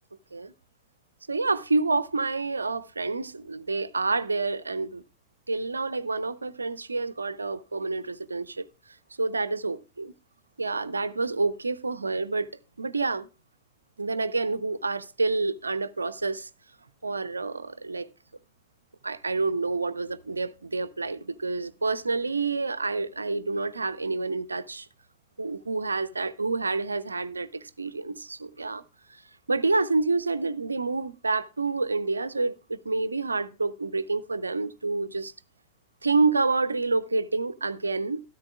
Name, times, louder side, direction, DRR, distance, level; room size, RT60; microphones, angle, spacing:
voice 1, 1.3-5.0 5.5-8.7 9.2-10.1 10.6-12.5 12.8-13.3 14.0-16.5 17.0-18.1 19.0-24.9 25.4-28.8 29.5-35.3 36.0-38.2, right 3 dB, 80° right, 0.4 m, -28 dB
13.5 x 13.0 x 2.4 m
figure-of-eight pair, 90°, 0 cm